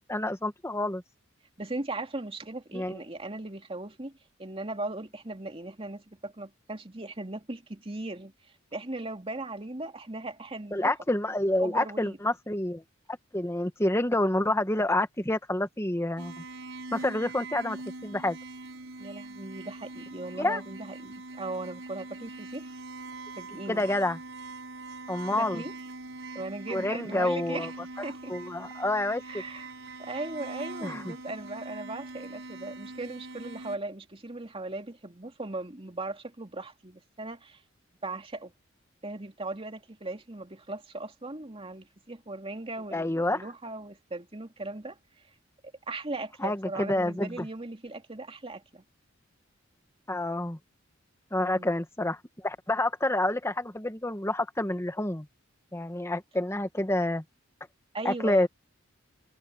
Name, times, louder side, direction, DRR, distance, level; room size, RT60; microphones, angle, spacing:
voice 1, 0.1-1.0 2.7-3.0 10.7-12.8 13.3-16.3 16.9-17.8 18.0-18.4 20.4-20.6 23.7-24.2 25.1-25.6 26.7-27.7 28.3-29.4 30.8-31.1 42.9-43.4 46.4-47.5 50.1-50.6 51.3-55.3 55.7-57.2 58.0-58.5, left 1 dB, 15° left, 1.6 m, -28 dB
voice 2, 1.6-10.9 11.6-12.2 19.0-22.7 23.4-23.9 25.3-25.7 26.4-27.7 28.0-28.3 29.3-29.7 30.0-37.6 38.0-38.5 39.0-45.0 45.9-48.8 51.4-51.7 57.9-58.5, right 2 dB, 30° right, 2.8 m, -38 dB
sound 1, 16.2-33.8, right 3 dB, 75° right, 6.7 m, -42 dB
head